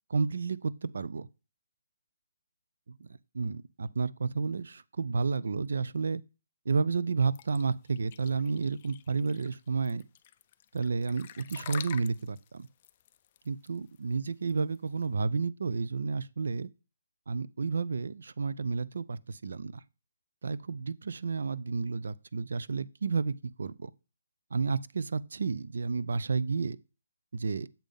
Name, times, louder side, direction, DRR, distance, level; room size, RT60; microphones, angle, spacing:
voice 1, 0.1-1.3 2.9-3.1 3.3-6.2 6.7-10.0 10.7-12.7 13.5-16.7 17.3-19.8 20.4-23.9 24.5-26.8 27.3-27.7, right 4 dB, 70° right, 0.4 m, -31 dB
sound 1, 7.3-15.0, left 11 dB, 30° left, 0.3 m, -47 dB
7.2 x 3.7 x 5.2 m
hypercardioid pair, 165°, 0 cm